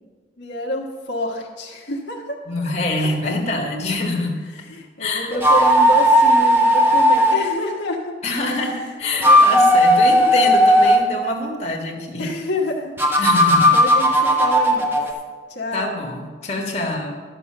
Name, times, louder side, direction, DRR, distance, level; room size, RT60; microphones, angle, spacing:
voice 1, 0.4-2.4 3.0-3.3 4.7-8.1 9.2-9.4 12.2-12.9 13.7-14.9 15.5-15.9, left 1 dB, 70° left, -1 dB, 1.3 m, -28 dB
voice 2, 2.4-4.4 5.0-5.3 8.2-12.3 13.2-13.8 15.7-17.1, left 2 dB, 35° left, -1 dB, 1.6 m, -25 dB
sound 1, 5.3-7.4 9.0-11.0 13.0-15.1, equal, 10° right, 1.0 m, -15 dB
11.5 x 6.3 x 6.7 m, 1.5 s
head